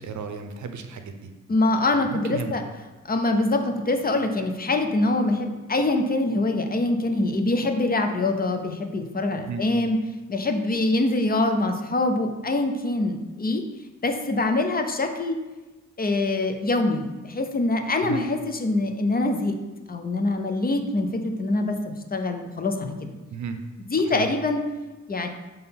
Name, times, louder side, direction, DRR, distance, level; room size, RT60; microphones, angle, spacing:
voice 1, 0.0-1.3 1.9-2.5 9.5-9.7 18.0-18.2 23.3-23.6 24.0-24.4, right 5 dB, 75° right, 7 dB, 0.7 m, -34 dB
voice 2, 1.5-2.6 3.1-10.0 10.3-13.6 14.0-15.4 16.0-19.6 19.9-23.1 23.9-24.6 25.1-25.3, left 2 dB, 30° left, 5 dB, 0.6 m, -24 dB
5.3 x 3.8 x 5.8 m, 1.2 s
wide cardioid pair, 135°, 30 cm